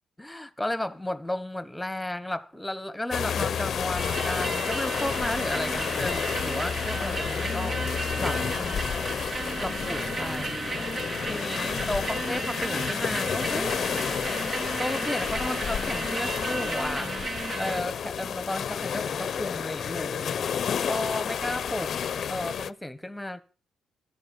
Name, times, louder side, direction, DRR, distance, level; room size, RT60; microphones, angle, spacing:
voice 1, 0.2-8.8 9.6-10.9 11.3-13.8 14.8-20.4 20.8-23.4, left 1 dB, 5° left, 1.3 m, -34 dB
sound 1, 3.1-22.7, left 8 dB, 55° left, 0.6 m, -31 dB
sound 2, 4.0-17.8, right 3 dB, 40° right, 1.0 m, -34 dB
14.0 x 11.0 x 7.1 m
cardioid pair, 90°, 0 cm